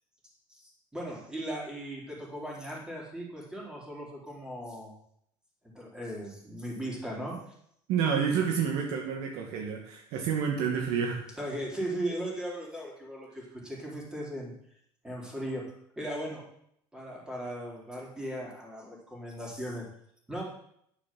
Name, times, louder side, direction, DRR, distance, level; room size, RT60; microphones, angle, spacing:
voice 1, 0.5-4.9 5.7-7.4 11.4-14.5 15.0-15.7 16.0-16.4 16.9-19.8 20.3-20.4, right 1 dB, 5° right, -3 dB, 4.3 m, -37 dB
voice 2, 7.9-11.2, right 7 dB, 70° right, 1 dB, 2.3 m, -29 dB
11.0 x 6.8 x 7.8 m, 0.71 s
cardioid pair, 140°, 10 cm